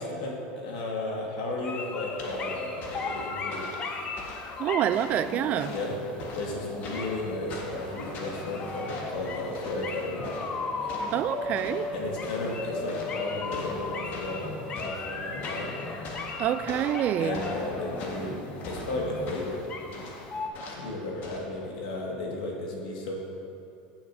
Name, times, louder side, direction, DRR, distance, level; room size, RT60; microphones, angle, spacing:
voice 1, 0.0-3.7 5.7-6.0 6.3-10.3 10.8-10.9 11.9-15.8 17.2-19.7 19.9-20.0 20.8-23.1, left 2 dB, 90° left, -1 dB, 2.0 m, -34 dB
sound 1, 1.5-20.5, left 3 dB, 30° left, 0.8 m, -37 dB
sound 2, 2.2-21.4, left 2 dB, 50° left, 1.6 m, -43 dB
voice 2, 4.6-5.7 11.1-11.9 16.4-17.4, right 11 dB, 40° right, 13 dB, 0.3 m, -27 dB
15.0 x 7.2 x 2.8 m, 2.7 s
supercardioid pair, 135°, 4 cm